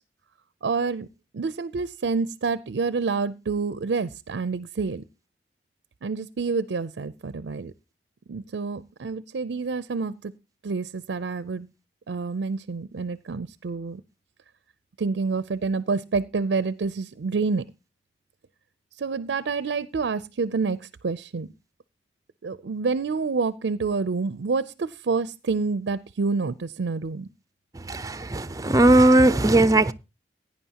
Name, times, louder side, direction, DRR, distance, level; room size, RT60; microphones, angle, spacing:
voice 1, 0.6-1.1 1.3-5.0 6.0-7.7 8.3-10.3 10.6-11.7 12.1-14.0 15.0-17.6 19.0-21.5 22.4-27.3, right 4 dB, 75° right, 0.5 m, -28 dB
voice 2, 27.9-29.9, right 1 dB, 20° right, 0.5 m, -18 dB
16.5 x 9.7 x 2.9 m
head